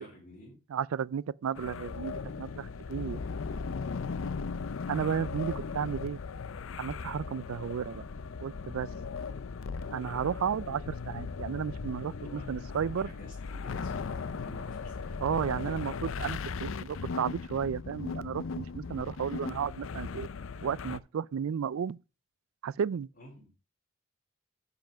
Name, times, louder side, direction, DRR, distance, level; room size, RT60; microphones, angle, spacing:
voice 1, 0.0-0.6 12.0-12.7 13.0-15.2 23.1-23.5, equal, 45° left, 3.9 m, -51 dB
voice 2, 0.7-3.2 4.9-6.2 6.8-8.0 8.4-8.9 9.9-13.1 15.2-20.3 20.6-22.0 22.6-23.1, right 7 dB, 80° right, 0.4 m, -33 dB
sound 1, 1.5-21.0, left 5 dB, 70° left, 0.5 m, -38 dB
10.5 x 5.7 x 5.2 m
head